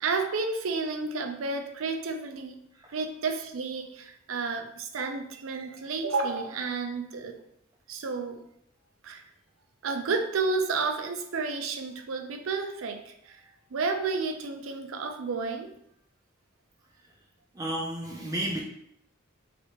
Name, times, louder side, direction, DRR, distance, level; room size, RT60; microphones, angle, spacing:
voice 1, 0.0-2.6 2.9-7.4 7.9-8.4 9.0-9.2 9.8-13.4 13.7-15.7, right 4 dB, 75° right, 5 dB, 0.5 m, -31 dB
voice 2, 17.5-18.6, right 1 dB, 15° right, -2 dB, 0.4 m, -32 dB
4.2 x 3.3 x 3.0 m, 0.76 s
head